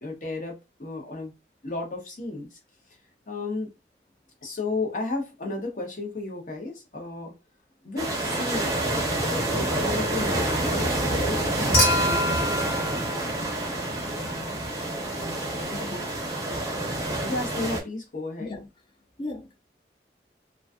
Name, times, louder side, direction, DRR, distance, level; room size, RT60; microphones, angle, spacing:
voice 1, 0.0-1.3 1.6-2.6 3.3-3.7 4.4-7.4 7.8-8.7 9.1-12.5 17.2-18.5, left 2 dB, 45° left, 0.8 m, -33 dB
sound 1, 8.0-17.8, right 1 dB, 20° right, 0.6 m, -27 dB
Human group actions / Chink clink / Liquid, 11.7-14.1 15.6-15.7, left 1 dB, 75° left, 1.1 m, -27 dB
voice 2, 15.7-16.1 18.4-18.7 19.2-19.6, left 2 dB, 25° left, 0.3 m, -37 dB
2.5 x 2.2 x 2.3 m
head